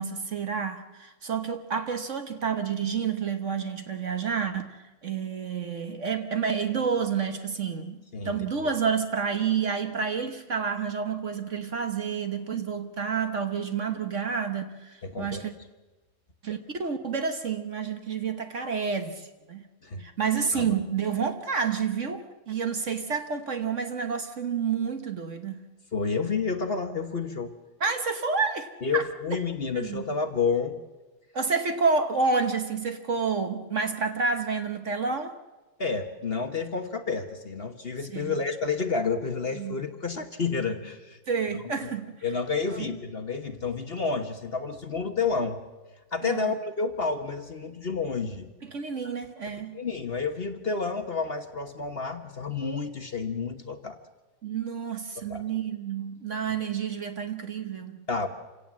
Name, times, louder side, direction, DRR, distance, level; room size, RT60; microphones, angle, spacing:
voice 1, 0.0-15.5 16.4-19.7 20.0-25.6 27.8-29.1 29.7-30.0 31.3-35.4 38.1-38.4 39.6-39.8 41.3-42.2 42.7-42.9 46.2-46.5 48.6-49.8 54.4-58.0, right 5 dB, 45° right, 1.2 m, -29 dB
voice 2, 15.0-15.4 19.8-20.1 20.5-20.8 25.9-27.5 28.8-30.8 35.8-41.2 41.5-41.6 42.2-45.6 46.1-48.5 49.7-54.0 55.3-55.4 58.1-58.3, left 4 dB, 35° left, 1.1 m, -30 dB
27.0 x 17.0 x 7.4 m
omnidirectional pair, 2.4 m